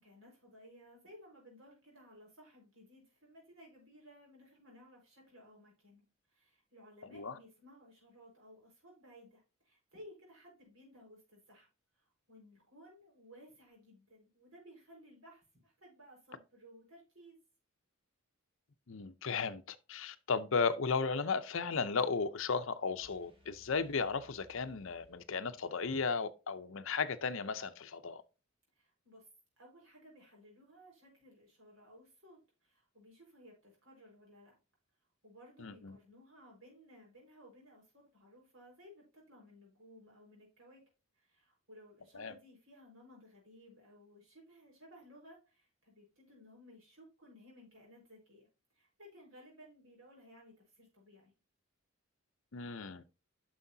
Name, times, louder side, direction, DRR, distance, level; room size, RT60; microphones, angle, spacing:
voice 1, 0.0-11.7 11.9-17.4 28.7-29.3 29.6-34.5 35.2-40.8 41.1-48.5 48.7-51.3, equal, 65° right, 4.7 m, -58 dB
voice 2, 18.9-28.2 35.6-36.0 42.1-42.3 52.5-53.0, left 5 dB, 60° left, 0.7 m, -35 dB
sound 1, 23.0-25.9, left 3 dB, 25° right, 2.0 m, -65 dB
9.7 x 6.4 x 2.7 m
head